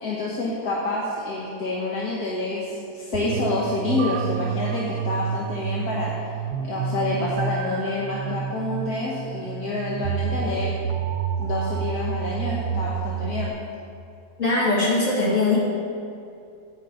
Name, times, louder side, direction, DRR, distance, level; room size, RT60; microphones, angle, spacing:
voice 1, 0.0-6.1 6.7-10.8 11.4-13.5, left 2 dB, 75° left, -5 dB, 1.7 m, -28 dB
sound 1, 3.1-13.5, right 7 dB, 80° right, 1.1 m, -29 dB
voice 2, 14.4-15.6, left 2 dB, 55° left, -5 dB, 2.5 m, -21 dB
16.5 x 6.1 x 3.9 m, 2.5 s
omnidirectional pair, 1.7 m